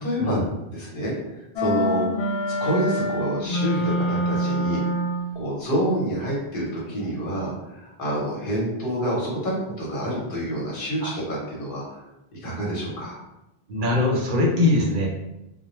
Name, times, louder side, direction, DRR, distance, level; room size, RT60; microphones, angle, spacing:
voice 1, 0.0-0.4 0.7-1.1 1.6-2.1 2.6-4.8 5.3-12.0 12.3-13.2, right 1 dB, 60° left, -4 dB, 1.0 m, -27 dB
sound 1, 1.6-5.4, equal, 80° left, 0.9 m, -25 dB
voice 2, 13.7-15.1, left 2 dB, 55° right, -1 dB, 0.7 m, -21 dB
2.1 x 2.1 x 2.9 m, 0.91 s
omnidirectional pair, 1.1 m